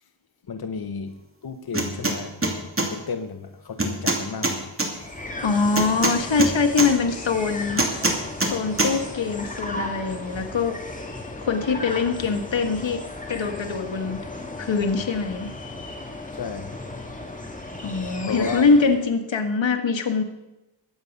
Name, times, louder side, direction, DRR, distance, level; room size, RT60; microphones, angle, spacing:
voice 1, 0.5-1.2 1.4-4.7 16.3-16.8 18.3-18.7, left 5 dB, 55° left, 0.9 m, -33 dB
sound 1, 1.7-2.2 2.4-2.9 3.8-4.9 5.8-6.9 7.8-8.5 8.8-8.9, right 2 dB, 30° right, 2.5 m, -22 dB
sound 2, 4.9-19.1, left 2 dB, 15° left, 2.0 m, -36 dB
voice 2, 5.4-7.8 8.4-10.8 11.5-13.0 13.3-14.2 14.6-15.5 17.8-20.2, left 4 dB, 80° left, 1.6 m, -23 dB
21.0 x 8.5 x 5.3 m
wide cardioid pair, 80°, 44 cm